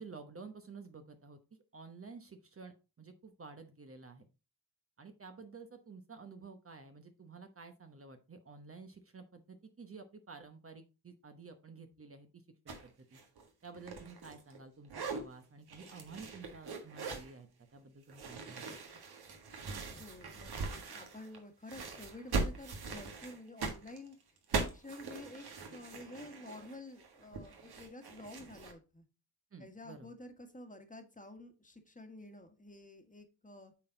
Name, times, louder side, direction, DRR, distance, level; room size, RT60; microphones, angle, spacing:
voice 1, 0.0-1.4 1.7-4.3 5.0-13.2 13.6-19.0 29.5-30.1, right 4 dB, 35° right, 7 dB, 1.0 m, -52 dB
sound 1, 12.7-12.9 13.1-14.6 14.9-15.2 15.7-17.3 18.1-21.4 21.7-28.7, right 4 dB, 70° right, 1.7 m, -41 dB
voice 2, 19.9-24.1 24.5-25.4 25.7-29.0 29.6-33.7, left 1 dB, 20° left, 6 dB, 1.5 m, -50 dB
8.4 x 4.1 x 3.9 m, 0.30 s
cardioid pair, 80°, 39 cm